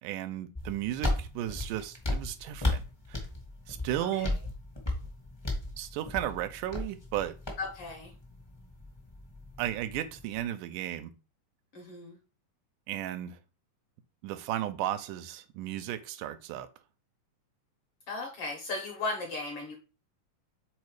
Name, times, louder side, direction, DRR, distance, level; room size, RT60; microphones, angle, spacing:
voice 1, 0.0-2.8 3.1-3.2 3.7-4.4 5.8-7.4 9.6-11.1 12.9-13.4 14.2-16.7, right 12 dB, 85° right, 2.1 m, -34 dB
sound 1, 0.5-10.4, left 2 dB, 20° left, 0.6 m, -35 dB
voice 2, 4.0-4.4 7.6-8.1 11.7-12.2 18.1-19.7, left 3 dB, 65° left, 1.6 m, -36 dB
4.9 x 4.1 x 4.8 m
omnidirectional pair, 3.6 m